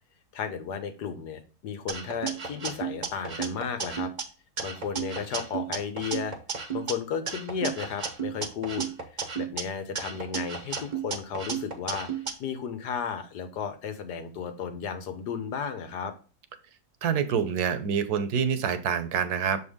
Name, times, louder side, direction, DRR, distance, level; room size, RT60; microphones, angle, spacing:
voice 1, 0.3-4.1 4.6-6.3 6.7-8.9 9.1-12.1 12.4-16.1, left 7 dB, 85° left, 8 dB, 1.6 m, -34 dB
sound 1, 1.9-4.2 4.6-6.9 7.3-9.6 9.9-12.3, right 6 dB, 35° right, 0.8 m, -33 dB
voice 2, 17.0-19.6, right 7 dB, 70° right, 11 dB, 1.3 m, -26 dB
7.0 x 4.4 x 3.6 m, 0.36 s
omnidirectional pair, 1.7 m